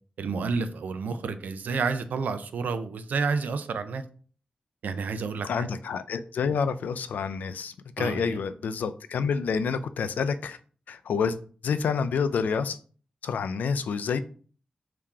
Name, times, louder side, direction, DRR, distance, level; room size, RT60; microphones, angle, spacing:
voice 1, 0.2-4.0 4.8-5.7 8.0-8.2, right 4 dB, 85° right, 0.4 m, -30 dB
voice 2, 5.4-10.6 10.9-11.4 11.6-12.8 13.2-14.2, left 6 dB, 90° left, 0.3 m, -28 dB
3.7 x 2.8 x 4.7 m
cardioid pair, 40°, 3 cm